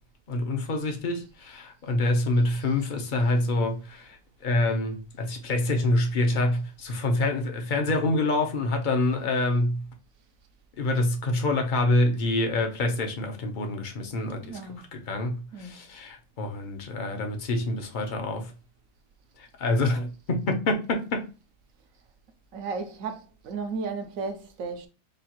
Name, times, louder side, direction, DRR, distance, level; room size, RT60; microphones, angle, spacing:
voice 1, 0.3-9.9 10.8-18.5 19.4-21.3, left 2 dB, 50° left, 0.6 m, -26 dB
voice 2, 14.4-14.9 15.5-15.7 22.5-24.9, right 4 dB, 70° right, 0.8 m, -34 dB
5.2 x 2.4 x 2.9 m
omnidirectional pair, 1.7 m